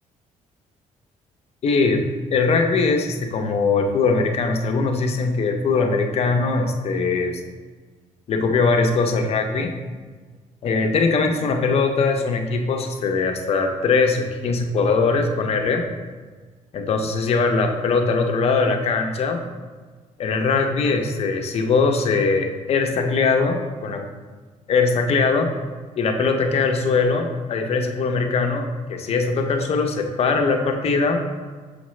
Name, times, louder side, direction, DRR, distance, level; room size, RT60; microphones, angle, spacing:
voice 1, 1.6-2.0 2.3-7.4 8.3-9.8 10.6-15.8 16.7-19.4 20.2-24.1 24.7-25.5 26.0-31.2, left 4 dB, 50° left, 4 dB, 0.7 m, -21 dB
6.4 x 5.0 x 3.2 m, 1.4 s
cardioid pair, 145°, 13 cm